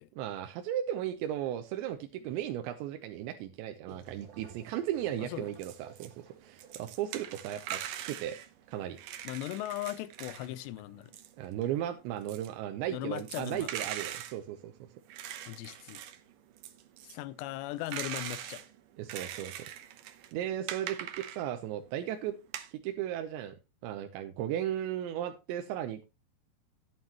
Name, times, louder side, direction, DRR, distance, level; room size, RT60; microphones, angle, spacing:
voice 1, 0.2-7.8 8.1-8.4 8.7-9.0 11.4-14.7 19.0-19.7 20.3-22.4 22.7-23.5 23.8-26.0, right 11 dB, 90° right, 3.1 m, -36 dB
sound 1, 3.9-9.3, right 7 dB, 55° right, 2.8 m, -56 dB
voice 2, 5.2-5.5 9.2-11.1 12.9-13.7 15.5-16.0 17.0-18.6, left 15 dB, 85° left, 2.9 m, -38 dB
sound 2, 5.3-6.1 6.4-10.5 10.8-21.7 22.2-22.7, right 11 dB, 75° right, 2.0 m, -42 dB
13.0 x 9.3 x 3.0 m
omnidirectional pair, 5.0 m